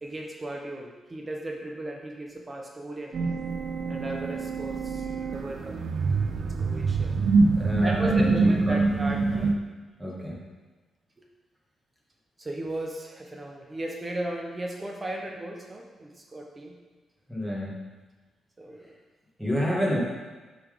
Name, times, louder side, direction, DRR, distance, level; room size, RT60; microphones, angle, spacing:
voice 1, 0.0-3.2 3.9-5.7 6.3-7.1 7.8-9.6 12.4-16.8 18.6-18.9 19.4-19.5, right 1 dB, 20° right, 0 dB, 0.8 m, -36 dB
sound 1, 3.1-9.5, right 3 dB, 55° right, 0.5 m, -25 dB
voice 2, 7.5-8.9 9.3-9.5 10.0-10.4 17.3-17.8 19.4-20.0, equal, ahead, -5 dB, 2.0 m, -29 dB
7.8 x 4.0 x 5.1 m, 1.3 s
cardioid pair, 110°, 0 cm